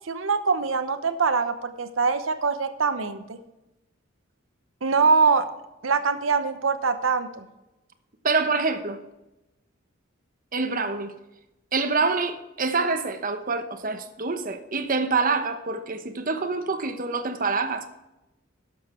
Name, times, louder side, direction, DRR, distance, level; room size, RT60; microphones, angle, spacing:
voice 1, 0.1-3.4 4.8-5.5 5.8-7.5, right 4 dB, 80° right, 10 dB, 0.9 m, -23 dB
voice 2, 8.2-9.0 10.5-11.1 11.7-17.9, right 4 dB, 45° right, 8 dB, 1.0 m, -26 dB
12.0 x 7.4 x 4.4 m, 0.95 s
head